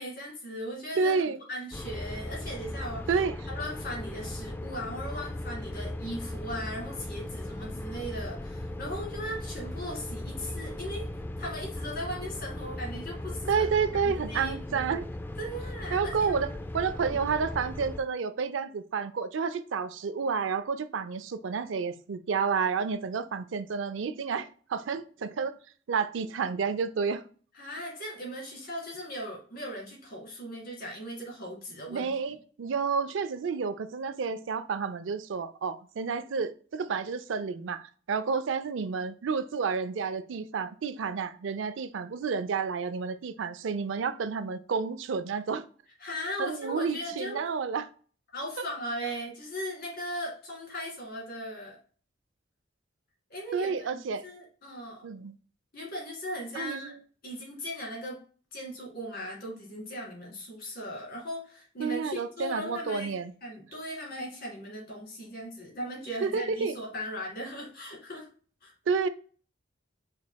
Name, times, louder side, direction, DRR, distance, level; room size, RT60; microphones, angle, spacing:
voice 1, 0.0-1.2 1.5-3.1 3.5-11.1 11.4-13.7 14.0-14.8 15.4-16.4 17.1-17.2 27.5-32.1 46.0-47.4 48.3-51.8 53.3-55.0 55.7-56.9 57.2-58.2 58.5-63.1 63.4-68.3 68.6-68.7, equal, 55° left, 2.0 m, -38 dB
voice 2, 1.0-1.4 3.1-3.3 13.5-15.0 15.9-25.6 25.9-27.2 31.9-45.6 46.4-47.9 49.0-49.1 53.5-54.2 55.0-55.3 56.5-57.0 61.8-63.3 66.2-66.7 68.9-69.1, right 5 dB, 80° right, 0.4 m, -30 dB
sound 1, 1.7-18.0, left 1 dB, 10° left, 0.3 m, -38 dB
5.2 x 4.1 x 2.2 m
head